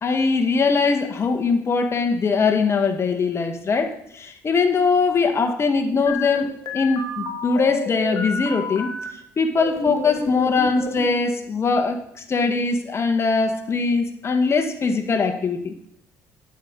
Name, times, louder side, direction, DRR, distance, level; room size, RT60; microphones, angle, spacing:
voice 1, 0.0-6.5 6.7-8.9 9.4-15.7, left 4 dB, 40° left, 7 dB, 1.8 m, -21 dB
sound 1, 6.1-9.1 9.6-11.2, left 3 dB, 65° left, 2.9 m, -30 dB
12.0 x 9.2 x 5.4 m, 0.71 s
supercardioid pair, 75°, 7 cm